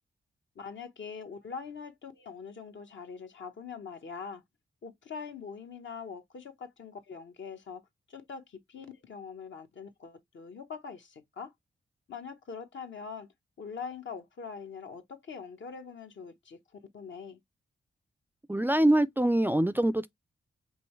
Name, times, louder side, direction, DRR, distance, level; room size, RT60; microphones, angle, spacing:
voice 1, 0.5-4.4 4.8-7.8 8.1-11.5 12.1-13.3 13.6-16.6 16.9-17.4, left 5 dB, 75° left, 1.1 m, -43 dB
voice 2, 18.5-20.1, right 1 dB, 10° right, 0.3 m, -24 dB
5.4 x 3.1 x 3.1 m
cardioid pair, 80°, 20 cm